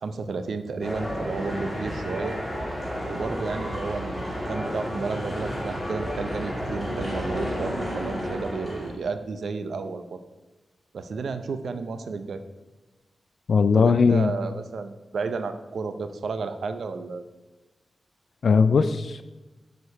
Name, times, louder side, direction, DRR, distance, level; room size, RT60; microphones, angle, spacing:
voice 1, 0.0-2.4 3.1-10.2 10.9-12.4 13.7-17.2, right 4 dB, 80° right, 10 dB, 0.6 m, -32 dB
sound 1, 0.8-8.9, equal, 5° right, 2.6 m, -31 dB
voice 2, 13.5-14.3 18.4-19.2, left 5 dB, 65° left, 12 dB, 0.3 m, -19 dB
7.0 x 6.6 x 4.7 m, 1.1 s
wide cardioid pair, 130°, 0 cm